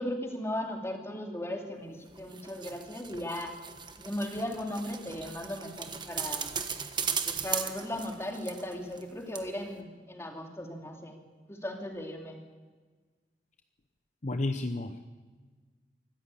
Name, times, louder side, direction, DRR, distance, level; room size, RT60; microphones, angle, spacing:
voice 1, 0.0-3.5 4.0-6.5 7.2-11.2 11.5-12.4, left 1 dB, 15° left, 2 dB, 2.8 m, -37 dB
sound 1, 2.1-9.1 9.3-9.4, right 6 dB, 25° right, 1.3 m, -37 dB
voice 2, 14.2-15.0, left 2 dB, 45° left, 7 dB, 0.8 m, -31 dB
24.5 x 14.5 x 8.4 m, 1.4 s
head